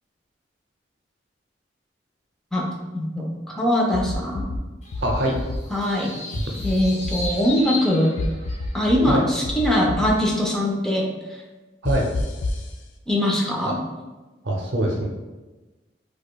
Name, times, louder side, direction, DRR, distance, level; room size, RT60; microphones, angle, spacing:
voice 1, 2.9-4.6 5.7-6.2 6.6-8.1 8.7-11.1 13.1-13.8, left 1 dB, 5° left, -2 dB, 0.5 m, -22 dB
sound 1, 3.9-4.6 4.9-5.6 6.3-7.3 8.2-9.1 9.4-10.1 11.8-12.6, left 2 dB, 85° left, 0.4 m, -28 dB
sound 2, 4.8-8.8, left 2 dB, 40° left, 0.7 m, -35 dB
voice 2, 5.0-5.3 9.1-9.2 11.8-12.0 13.6-13.7 14.4-15.1, right 1 dB, 80° right, 0 dB, 0.5 m, -23 dB
4.7 x 2.2 x 2.2 m, 1.2 s
head